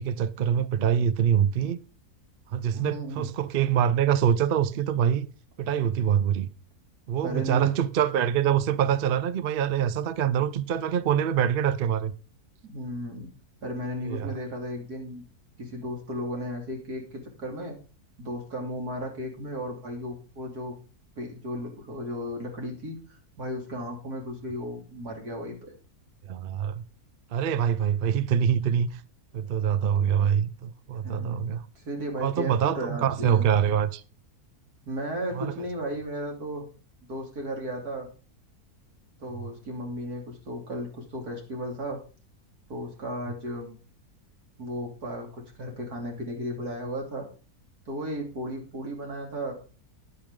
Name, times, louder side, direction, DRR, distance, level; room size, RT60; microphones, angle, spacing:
voice 1, 0.0-1.8 2.5-5.3 5.6-6.5 7.1-12.1 14.0-14.3 26.3-26.8 27.3-29.0 29.3-31.6 32.2-34.0 35.3-35.5, right 9 dB, 55° right, 0.6 m, -25 dB
voice 2, 2.7-3.3 7.2-7.7 12.6-13.3 13.6-15.2 15.6-17.8 18.2-20.8 21.2-25.7 31.0-33.5 34.9-36.6 37.1-38.1 39.2-42.0 42.7-43.8 44.6-47.3 47.9-49.5, equal, 70° right, 3.6 m, -35 dB
11.0 x 9.9 x 3.7 m
omnidirectional pair, 1.7 m